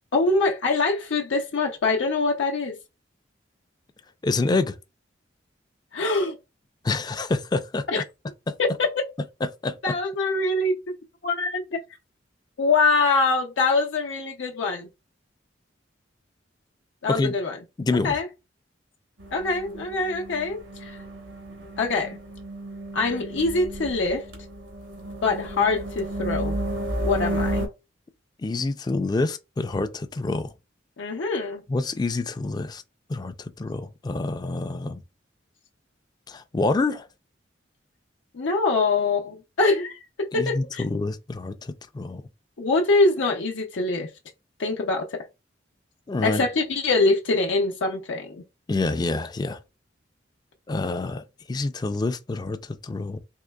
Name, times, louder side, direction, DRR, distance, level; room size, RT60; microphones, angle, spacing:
voice 1, 0.1-2.7 5.9-6.4 7.9-8.0 8.6-8.9 9.8-10.7 11.2-11.8 12.6-14.9 17.0-17.6 18.0-18.3 19.3-21.0 21.8-22.2 22.9-24.2 25.2-26.6 27.0-27.7 31.0-31.6 38.3-40.8 42.6-44.1 44.6-45.2 46.2-48.4, left 3 dB, 85° left, 0.6 m, -24 dB
voice 2, 4.2-4.8 6.8-8.0 8.5-8.6 9.6-9.9 17.1-17.3 17.8-18.2 28.4-30.5 31.7-32.8 33.1-35.0 36.3-37.1 40.3-42.2 46.1-46.5 48.7-49.6 50.7-53.2, left 3 dB, 20° left, 0.3 m, -27 dB
sound 1, 19.2-27.7, right 1 dB, 85° right, 1.0 m, -32 dB
3.7 x 3.1 x 2.2 m
head